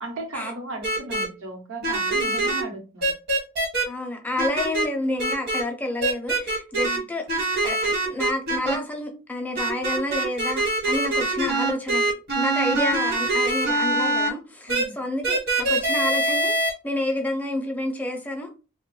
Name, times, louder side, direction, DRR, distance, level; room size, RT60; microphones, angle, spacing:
voice 1, 0.0-3.1 6.8-7.1 14.7-15.0, right 2 dB, 70° right, 1.0 m, -36 dB
sound 1, 0.8-1.2 1.8-2.6 3.0-3.8 4.4-4.8 5.2-5.6 6.0-7.0 7.3-8.7 9.6-14.3 14.7-14.8 15.2-16.7, right 2 dB, 50° right, 1.2 m, -23 dB
voice 2, 3.9-7.3 7.6-12.0 12.4-18.5, left 1 dB, 5° left, 0.5 m, -29 dB
2.9 x 2.2 x 3.1 m
head